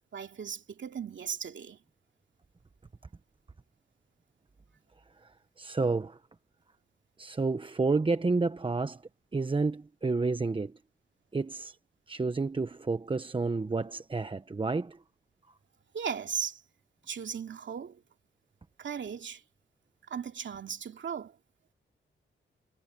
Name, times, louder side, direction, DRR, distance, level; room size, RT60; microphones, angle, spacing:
voice 1, 0.1-1.8 15.9-16.6 17.1-18.0 18.8-19.4 20.1-21.3, right 7 dB, 70° right, 2.6 m, -37 dB
voice 2, 5.6-6.2 7.2-9.0 9.3-10.7 11.3-11.7 12.1-15.0, right 3 dB, 25° right, 0.9 m, -30 dB
cardioid pair, 90°, 20 cm